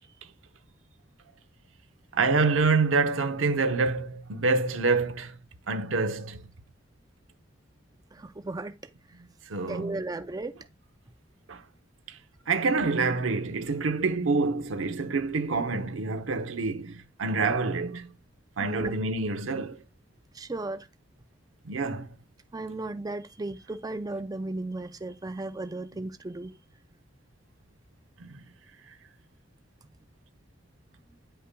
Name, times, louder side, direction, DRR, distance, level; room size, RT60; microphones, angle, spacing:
voice 1, 2.1-5.4 5.7-6.5 9.5-10.0 11.5-11.6 12.1-12.2 12.5-18.1 18.6-19.8 21.6-22.1 28.2-28.4, right 4 dB, 90° right, 0.8 m, -27 dB
voice 2, 8.1-8.7 9.7-10.5 18.6-19.0 20.3-20.9 22.5-26.5, right 2 dB, 20° right, 0.4 m, -35 dB
9.8 x 5.6 x 2.2 m
head